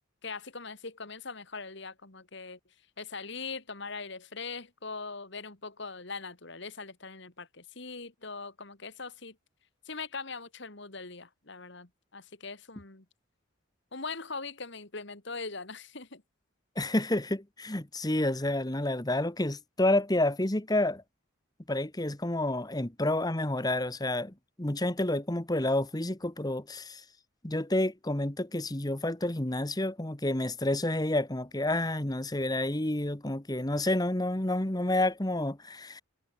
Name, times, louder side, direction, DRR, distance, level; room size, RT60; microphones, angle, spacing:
voice 1, 0.2-2.6 3.0-9.4 9.9-13.0 13.9-16.2, left 4 dB, 55° left, 2.3 m, -41 dB
voice 2, 16.8-21.0 21.7-27.0 27.4-36.0, left 1 dB, 20° left, 1.2 m, -29 dB
head